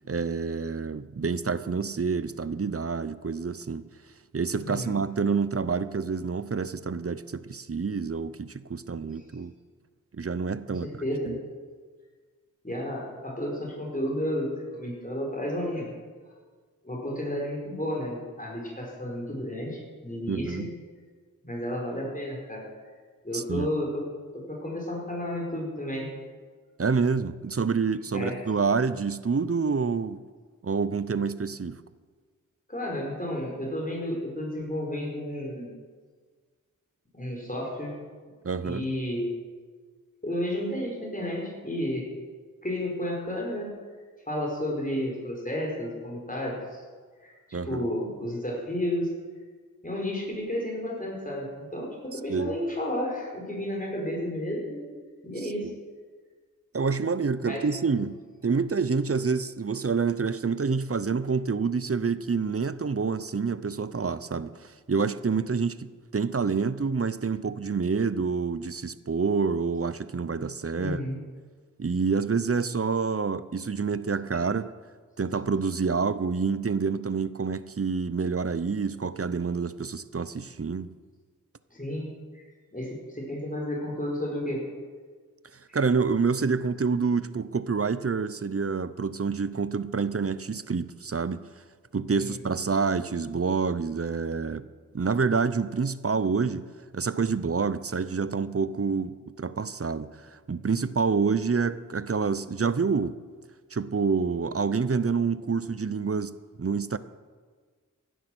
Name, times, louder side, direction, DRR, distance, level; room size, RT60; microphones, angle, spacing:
voice 1, 0.1-3.9 4.3-9.5 10.1-10.9 11.3-11.4 20.3-20.7 23.3-23.7 26.8-30.2 30.6-31.8 38.4-38.9 47.5-47.9 52.1-52.5 55.4-55.7 56.7-58.2 58.4-71.0 71.8-74.7 75.2-80.9 85.7-91.4 91.9-94.7 94.9-96.7 96.9-103.1 103.7-107.0, right 5 dB, 45° right, 0.7 m, -27 dB
voice 2, 4.6-4.9 9.2-9.3 10.7-11.3 12.6-15.9 16.8-20.7 21.4-22.7 23.2-24.1 24.3-26.1 28.1-28.4 32.7-35.7 37.1-37.9 38.6-39.3 40.2-42.0 42.6-43.7 44.3-46.8 47.2-49.1 49.8-54.9 55.2-55.7 57.4-57.6 70.7-71.2 81.7-82.0 82.3-82.5 82.7-84.7 85.7-85.8 92.2-92.4, left 1 dB, 25° left, 4.6 m, -32 dB
16.5 x 11.0 x 6.1 m
wide cardioid pair, 55°, 33 cm